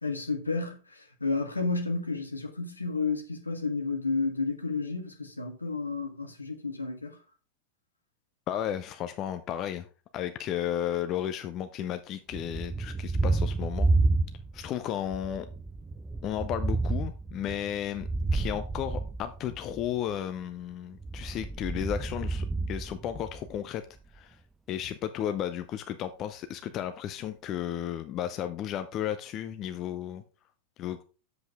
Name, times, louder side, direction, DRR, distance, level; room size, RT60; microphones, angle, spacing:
voice 1, 0.0-7.2, left 3 dB, 80° left, 1.5 m, -31 dB
voice 2, 8.5-9.9 10.1-13.9 14.5-15.5 16.2-23.8 24.1-24.4 24.7-30.2 30.8-31.0, left 10 dB, 35° left, 0.6 m, -34 dB
Thunder, 12.3-14.7 15.1-19.9 20.9-23.6, right 3 dB, 10° right, 0.4 m, -30 dB
7.9 x 7.3 x 3.5 m
figure-of-eight pair, 90°, 0 cm